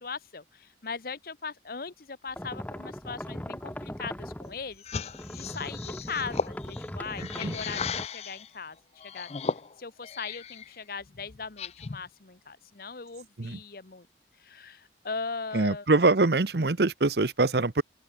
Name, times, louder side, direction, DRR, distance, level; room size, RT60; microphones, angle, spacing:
voice 1, 0.0-8.8 9.0-9.3 9.8-14.1 14.4-15.9, left 5 dB, 55° left, 1.0 m, -39 dB
sound 1, 2.4-4.7 5.1-8.1, left 1 dB, 10° left, 0.9 m, -39 dB
sound 2, 4.8-8.5 9.0-10.7 11.1-12.1, left 5 dB, 35° left, 0.5 m, -36 dB
voice 2, 15.5-17.8, right 3 dB, 65° right, 0.9 m, -24 dB
open air
head